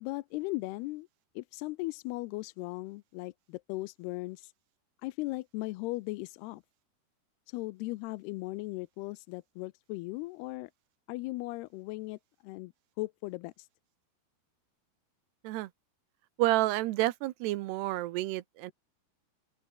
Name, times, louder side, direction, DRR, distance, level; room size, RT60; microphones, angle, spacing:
voice 1, 0.0-1.1 1.4-4.5 5.0-6.6 7.5-10.7 11.1-13.7, left 21 dB, 85° left, 2.6 m, -38 dB
voice 2, 16.4-18.7, right 16 dB, 80° right, 3.0 m, -29 dB
open air
omnidirectional pair, 4.8 m